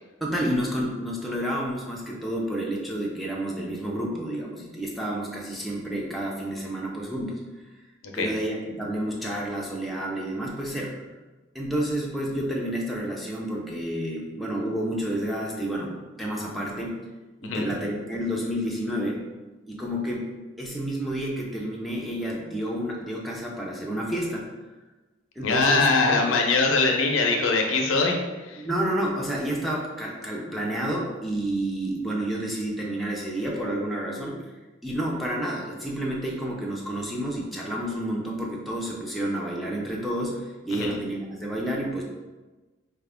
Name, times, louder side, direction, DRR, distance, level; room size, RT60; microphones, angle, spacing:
voice 1, 0.2-7.4 8.1-11.0 11.5-17.0 17.4-19.3 19.7-20.3 20.6-24.5 25.4-26.3 28.6-34.6 34.8-42.0, right 1 dB, ahead, -3 dB, 0.4 m, -30 dB
voice 2, 25.4-28.6 40.7-40.9, left 3 dB, 80° left, 2 dB, 0.6 m, -22 dB
4.2 x 2.4 x 3.4 m, 1.2 s
head